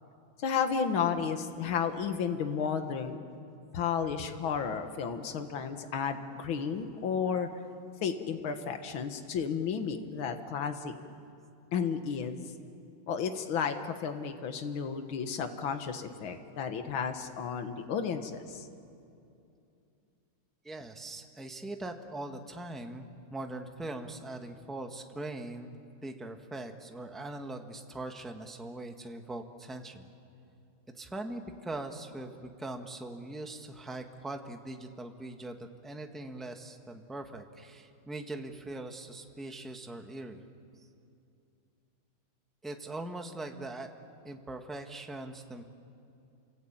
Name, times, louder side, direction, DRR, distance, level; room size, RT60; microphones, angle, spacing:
voice 1, 0.4-3.2 3.7-7.5 8.0-10.9 11.7-12.4 13.1-18.7, left 6 dB, 75° left, 7 dB, 2.2 m, -32 dB
voice 2, 20.6-25.7 26.0-30.1 30.9-40.4 42.6-43.9 44.2-45.6, right 2 dB, ahead, 4 dB, 1.3 m, -41 dB
29.0 x 23.0 x 8.8 m, 2.6 s
omnidirectional pair, 2.2 m